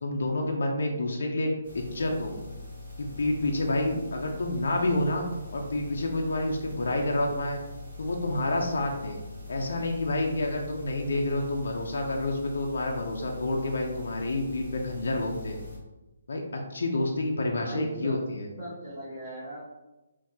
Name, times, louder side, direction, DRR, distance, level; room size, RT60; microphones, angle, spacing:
voice 1, 0.0-2.3 3.0-5.2 5.5-7.6 8.0-9.2 9.5-15.6 16.3-18.5, left 2 dB, 60° left, 1 dB, 0.5 m, -29 dB
sound 1, 1.6-15.8, left 3 dB, 30° right, 1.1 m, -43 dB
voice 2, 17.4-18.2 18.6-19.6, right 1 dB, 5° left, -16 dB, 1.4 m, -38 dB
3.6 x 2.6 x 2.7 m, 1.0 s
hypercardioid pair, 180°, 0 cm